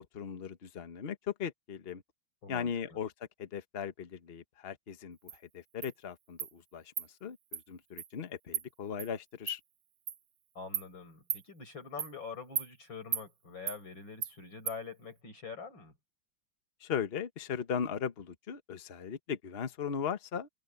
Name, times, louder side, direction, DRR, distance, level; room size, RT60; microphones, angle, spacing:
voice 1, 0.0-2.0 2.5-3.1 3.4-5.2 5.5-9.6 16.8-20.5, left 7 dB, 35° left, 1.2 m, -38 dB
voice 2, 2.4-3.0 10.5-15.9, left 5 dB, 80° left, 6.5 m, -45 dB
Insect, 5.3-5.4 5.8-5.9 6.4-6.5 7.0-7.1 7.5-7.6 8.0-8.1 8.5-8.6 9.0-9.1 9.5-9.6 10.1-10.2 10.7-10.9 11.3-11.4 12.0-12.1 12.6-12.7 13.1-13.3 13.7-13.8 14.2-14.3 14.7-14.8, right 9 dB, 90° right, 1.9 m, -35 dB
omnidirectional pair, 2.1 m